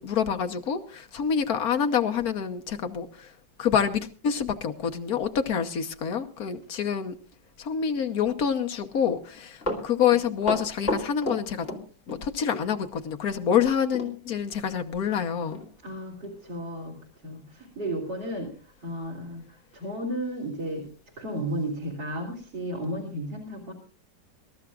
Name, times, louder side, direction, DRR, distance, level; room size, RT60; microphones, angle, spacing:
voice 1, 0.0-3.3 3.6-7.2 7.6-11.7 12.1-15.6, left 8 dB, 60° left, 1.5 m, -27 dB
Run, 9.3-12.3 12.5-12.7 13.9-14.1 14.5-14.6 15.1-15.2 15.5-15.7 16.2-16.3, left 1 dB, 40° left, 3.1 m, -31 dB
voice 2, 15.8-17.0 17.2-20.9 21.2-23.7, right 1 dB, 85° right, 4.0 m, -33 dB
25.5 x 13.0 x 2.5 m
omnidirectional pair, 1.9 m